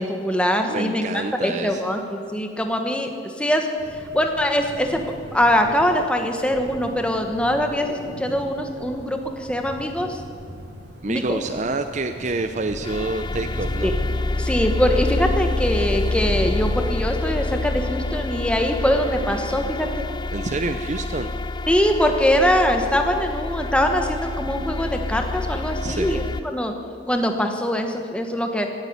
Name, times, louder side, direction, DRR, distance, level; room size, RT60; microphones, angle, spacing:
voice 1, 0.0-1.1 1.4-3.8 4.1-5.0 5.3-10.2 11.1-11.4 13.8-14.0 14.4-20.0 21.7-26.2 26.5-26.7 27.1-28.7, equal, 5° left, 4 dB, 1.2 m, -22 dB
voice 2, 0.7-1.8 11.0-14.0 20.3-21.3 25.8-26.2, right 3 dB, 35° right, 8 dB, 0.6 m, -27 dB
sound 1, 3.8-14.2, equal, 55° right, 3.3 m, -40 dB
sound 2, 12.7-26.4, left 2 dB, 20° left, 0.4 m, -27 dB
16.5 x 9.3 x 9.4 m, 2.4 s
head